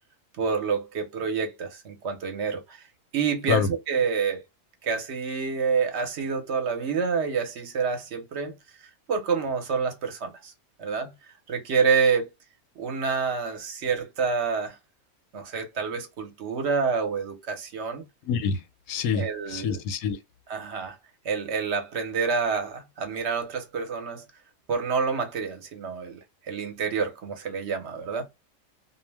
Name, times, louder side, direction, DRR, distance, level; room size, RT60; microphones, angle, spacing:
voice 1, 0.4-2.8 3.1-4.4 4.8-8.5 9.1-10.5 10.8-11.1 11.5-12.3 12.8-14.8 15.3-18.0 19.1-19.8 20.5-21.0 21.2-24.2 24.7-28.3, right 5 dB, 55° right, 0.9 m, -28 dB
voice 2, 18.2-18.6 18.9-20.2, left 6 dB, 80° left, 1.0 m, -26 dB
2.4 x 2.1 x 3.2 m
omnidirectional pair, 1.5 m